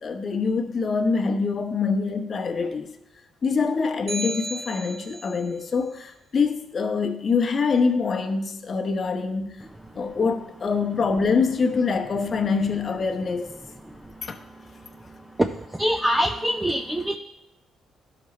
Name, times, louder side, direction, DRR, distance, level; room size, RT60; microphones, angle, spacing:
voice 1, 0.0-3.0 3.4-9.7 9.9-13.5 14.2-14.4, left 4 dB, 45° left, 0.9 m, -25 dB
sound 1, 4.1-5.5, right 1 dB, 35° right, 1.4 m, -34 dB
voice 2, 15.4-17.2, equal, 10° right, 0.4 m, -24 dB
12.5 x 5.9 x 3.2 m
cardioid pair, 90°, 0 cm